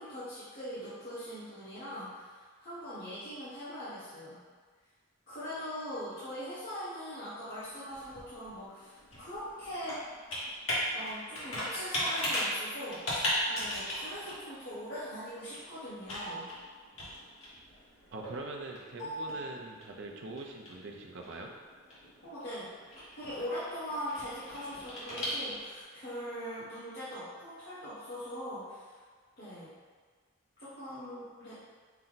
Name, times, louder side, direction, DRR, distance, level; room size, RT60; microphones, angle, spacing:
voice 1, 0.0-4.4 5.3-10.0 10.9-16.5 22.2-22.7 23.2-29.0 29.4-29.7 30.6-31.5, equal, 50° left, -12 dB, 1.2 m, -41 dB
Computer keyboard, 7.5-25.8, equal, 75° left, 1.4 m, -38 dB
voice 2, 18.1-21.5, right 2 dB, 60° right, 0 dB, 0.5 m, -43 dB
5.6 x 2.1 x 3.9 m, 1.5 s
head